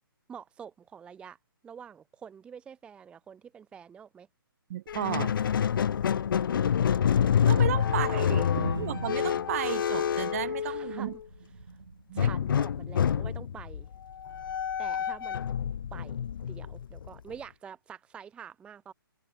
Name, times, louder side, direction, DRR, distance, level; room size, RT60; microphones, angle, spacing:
voice 1, 0.3-1.4 1.6-4.3 7.9-8.4 10.6-11.1 11.6-11.8 12.1-13.9 14.8-15.4 15.9-16.2 16.4-18.9, right 7 dB, 10° right, 0.6 m, -47 dB
voice 2, 4.7-5.3 7.5-8.5 8.8-11.1 12.1-12.3, right 13 dB, 40° right, 1.3 m, -33 dB
Squeak, 4.9-11.2 12.2-17.3, left 8 dB, 60° left, 0.4 m, -28 dB
sound 1, 8.6-10.8 11.2-12.1 13.0-13.3 14.3-14.5, right 5 dB, 75° right, 4.3 m, -41 dB
hypercardioid pair, 140°, 12 cm